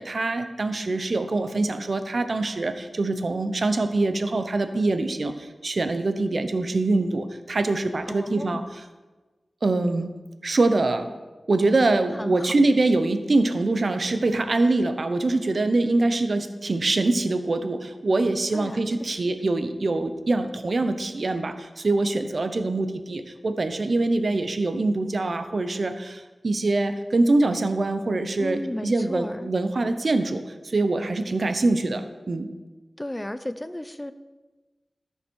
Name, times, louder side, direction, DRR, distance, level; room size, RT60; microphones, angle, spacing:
voice 1, 0.0-8.6 9.6-10.1 10.4-11.1 11.5-32.5, right 2 dB, 60° right, 9 dB, 0.7 m, -24 dB
voice 2, 8.1-8.7 12.1-12.5 18.5-19.3 28.4-29.5 33.0-34.1, left 1 dB, 15° left, 12 dB, 0.5 m, -34 dB
13.0 x 5.5 x 4.7 m, 1.2 s
wide cardioid pair, 70°, 0 cm